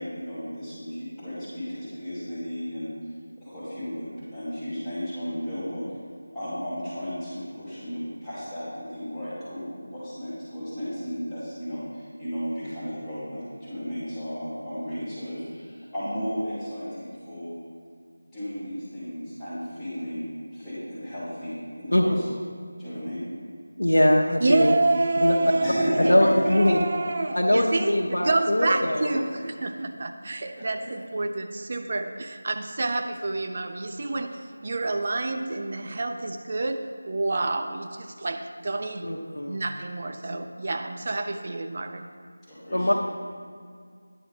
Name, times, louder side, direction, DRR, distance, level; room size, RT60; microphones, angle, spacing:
voice 1, 0.0-3.1 3.4-6.0 6.3-17.6 18.3-22.2 22.8-23.2 25.4-26.8 28.6-29.4 30.6-30.9 42.5-42.9, equal, 5° left, -13 dB, 2.7 m, -34 dB
voice 2, 23.8-24.7 25.2-25.4 26.0-26.8 27.4-29.0 39.0-39.6 42.7-42.9, left 1 dB, 80° left, -2 dB, 0.8 m, -21 dB
voice 3, 24.4-26.0 26.6-42.1, right 2 dB, 40° right, 6 dB, 0.6 m, -28 dB
10.0 x 6.1 x 5.4 m, 2.1 s
figure-of-eight pair, 170°, 0 cm